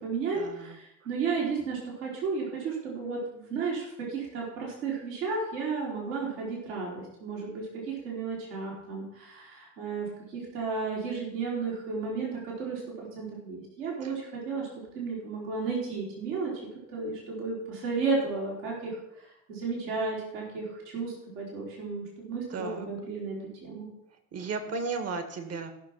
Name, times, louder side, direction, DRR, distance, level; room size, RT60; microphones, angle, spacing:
voice 1, 0.0-14.7 14.9-16.5 16.9-23.9, right 4 dB, 65° right, -3 dB, 3.7 m, -33 dB
voice 2, 22.5-22.9 24.3-25.7, right 4 dB, 40° right, 7 dB, 1.9 m, -34 dB
14.5 x 6.3 x 5.8 m, 0.81 s
figure-of-eight pair, 55°, 39 cm